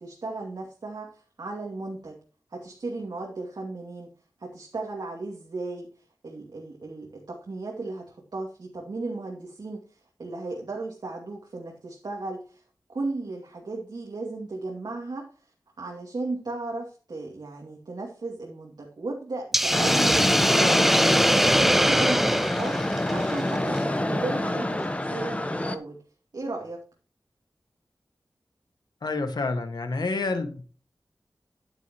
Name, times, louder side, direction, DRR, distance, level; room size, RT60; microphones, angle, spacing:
voice 1, 0.0-2.2 2.5-4.1 4.4-5.9 6.2-12.6 12.9-15.3 15.8-26.0 26.3-26.8, right 3 dB, 75° right, -1 dB, 2.5 m, -35 dB
Hiss, 19.5-23.8, equal, 5° right, 0.4 m, -23 dB
sound 1, 19.7-25.8, left 1 dB, 20° left, 1.1 m, -26 dB
voice 2, 29.0-30.6, left 3 dB, 75° left, 6 dB, 1.9 m, -28 dB
11.0 x 10.0 x 3.1 m, 0.38 s
wide cardioid pair, 95°, 7 cm